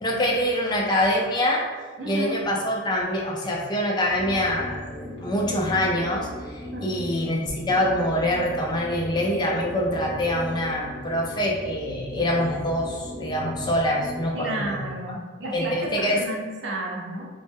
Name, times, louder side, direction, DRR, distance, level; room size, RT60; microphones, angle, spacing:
voice 1, 0.0-1.7 2.0-6.3 6.8-14.8 15.5-16.2, left 1 dB, 20° left, -2 dB, 0.3 m, -25 dB
voice 2, 2.0-2.4 6.7-7.0 14.3-17.3, right 1 dB, 70° right, -1 dB, 0.5 m, -32 dB
sound 1, 4.1-14.5, left 1 dB, 40° right, 0.9 m, -38 dB
2.1 x 2.0 x 3.3 m, 1.5 s
head